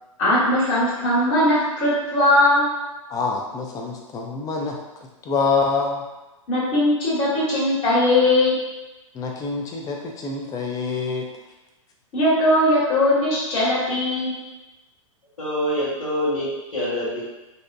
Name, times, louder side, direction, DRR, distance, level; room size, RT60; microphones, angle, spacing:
voice 1, 0.2-2.7 6.5-8.5 12.1-14.4, left 1 dB, 35° left, -7 dB, 1.2 m, -19 dB
voice 2, 3.1-4.8 5.2-6.0 9.1-11.2, left 4 dB, 20° left, 1 dB, 0.4 m, -26 dB
voice 3, 15.4-17.2, equal, 85° left, -11 dB, 0.9 m, -25 dB
2.6 x 2.1 x 2.5 m, 1.0 s
hypercardioid pair, 110°, 17 cm